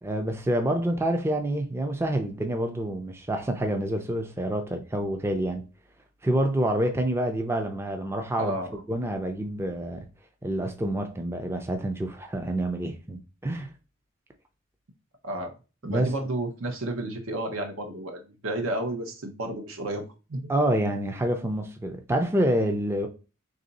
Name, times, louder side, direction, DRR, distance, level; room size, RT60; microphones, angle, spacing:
voice 1, 0.0-5.6 6.2-8.6 8.9-10.1 10.4-13.7 15.8-16.1 20.5-23.1, right 1 dB, 10° right, 0.4 m, -27 dB
voice 2, 8.4-8.7 15.2-15.5 15.8-20.0 20.3-20.4, right 1 dB, 80° right, 0.9 m, -31 dB
3.5 x 2.7 x 3.9 m
head